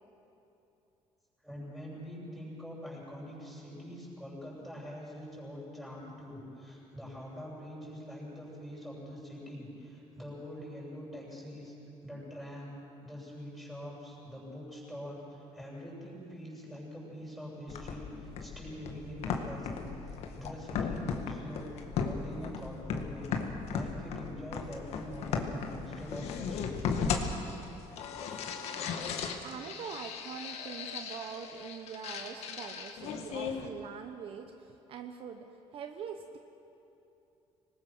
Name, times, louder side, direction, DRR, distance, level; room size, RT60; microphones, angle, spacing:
voice 1, 1.4-11.8 12.0-26.8, equal, ahead, -5 dB, 7.4 m, -44 dB
sound 1, 17.7-33.7, left 6 dB, 70° left, 1.8 m, -37 dB
voice 2, 29.4-36.4, right 7 dB, 55° right, 5 dB, 1.1 m, -43 dB
25.0 x 20.5 x 6.3 m, 2.9 s
cardioid pair, 140°, 11 cm